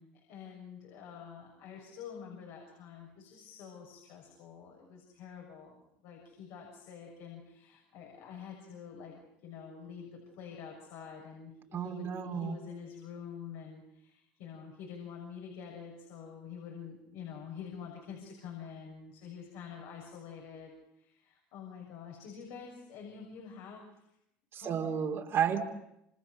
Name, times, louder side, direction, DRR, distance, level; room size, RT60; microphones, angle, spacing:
voice 1, 0.3-24.0 24.5-25.0, left 7 dB, 75° left, 0 dB, 6.7 m, -47 dB
voice 2, 11.7-12.6 24.5-25.6, right 8 dB, 50° right, 3 dB, 3.4 m, -32 dB
28.0 x 25.5 x 6.7 m, 0.81 s
supercardioid pair, 85°, 5 cm